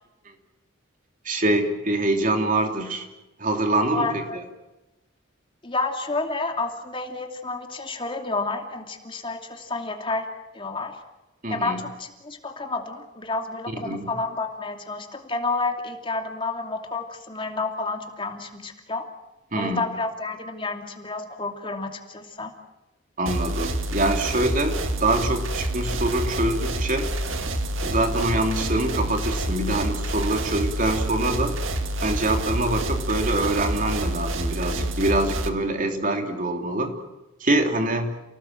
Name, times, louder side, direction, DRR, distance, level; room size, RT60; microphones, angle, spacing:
voice 1, 1.2-3.1 3.4-4.4 11.4-11.8 13.7-14.1 19.5-19.8 23.2-27.1 27.8-31.6 32.0-36.9 37.4-38.1, right 2 dB, 40° right, 4 dB, 3.2 m, -25 dB
voice 2, 3.9-4.4 5.6-10.3 10.5-11.0 11.5-19.1 19.6-22.5, left 3 dB, 25° left, 4 dB, 2.7 m, -30 dB
sound 1, 23.3-35.5, right 1 dB, 70° right, 2.0 m, -28 dB
29.5 x 18.5 x 7.6 m, 1.1 s
head